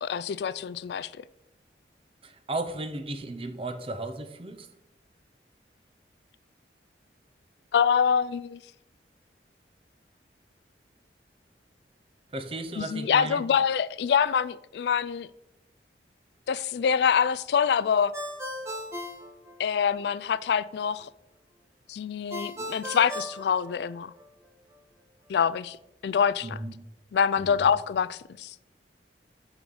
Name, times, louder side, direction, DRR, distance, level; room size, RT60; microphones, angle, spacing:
voice 1, 0.0-1.1 7.7-8.6 12.8-15.3 16.5-18.1 19.6-21.1 21.9-24.1 25.3-25.8 26.0-26.6 27.1-28.5, left 7 dB, 70° left, 0.3 m, -25 dB
voice 2, 2.2-4.7 12.3-13.4 26.4-26.8 27.4-27.7, right 2 dB, 30° right, 0.7 m, -35 dB
Ringtone, 18.1-20.1 22.3-24.3, left 1 dB, 15° right, 1.3 m, -37 dB
6.4 x 6.0 x 5.4 m
head